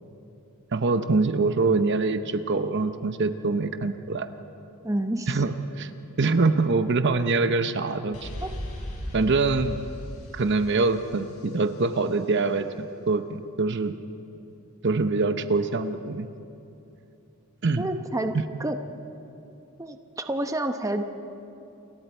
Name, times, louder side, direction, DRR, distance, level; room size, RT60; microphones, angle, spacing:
voice 1, 0.7-4.3 5.3-5.9 6.2-8.3 9.1-9.8 10.3-12.7 13.1-14.0 14.8-16.3 17.6-17.8, right 3 dB, 55° right, 9 dB, 0.8 m, -24 dB
voice 2, 4.8-5.4 8.4-8.5 17.8-18.8 19.8-21.1, right 1 dB, 15° right, 6 dB, 0.8 m, -29 dB
sound 1, 8.1-11.9, equal, 75° left, 5.3 m, -37 dB
29.0 x 22.0 x 4.5 m, 2.9 s
head